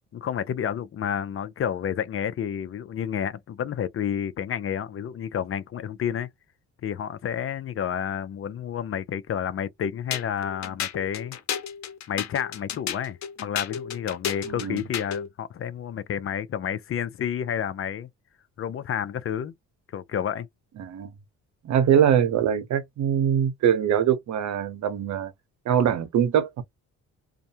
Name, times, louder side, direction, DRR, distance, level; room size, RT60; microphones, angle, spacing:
voice 1, 0.1-6.3 6.8-11.4 12.1-18.1 18.6-19.5 19.9-20.5, left 9 dB, 45° left, 0.5 m, -30 dB
sound 1, 10.1-15.3, left 9 dB, 65° left, 0.9 m, -32 dB
voice 2, 14.5-14.8 20.8-21.1 21.6-25.3 25.7-26.6, right 9 dB, 70° right, 0.8 m, -23 dB
2.4 x 2.1 x 2.7 m
cardioid pair, 90°, 30 cm